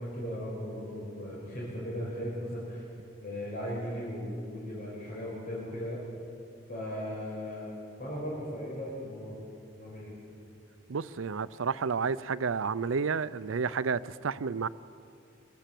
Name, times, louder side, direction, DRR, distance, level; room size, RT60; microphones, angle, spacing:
voice 1, 0.0-2.8 3.2-6.0 6.7-7.7 8.0-9.4 9.8-10.1, equal, 45° left, 5.5 m, -37 dB
voice 2, 10.9-14.7, right 5 dB, 85° right, 0.5 m, -31 dB
24.5 x 19.5 x 7.7 m
head